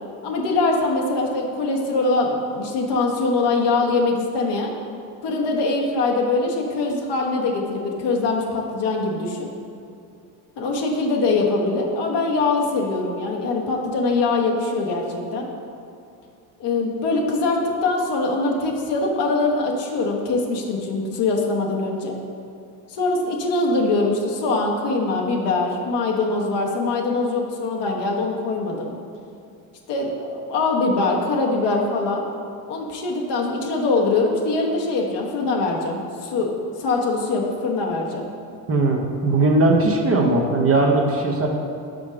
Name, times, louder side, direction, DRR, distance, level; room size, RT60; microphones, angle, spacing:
voice 1, 0.2-4.7 5.2-9.5 10.6-15.5 16.6-22.2 22.9-28.9 29.9-32.2 32.7-38.2, left 3 dB, 60° left, -1 dB, 1.1 m, -23 dB
voice 2, 38.7-41.5, right 2 dB, 30° right, 1 dB, 0.8 m, -19 dB
5.1 x 4.7 x 5.0 m, 2.5 s
supercardioid pair, 80°, 46 cm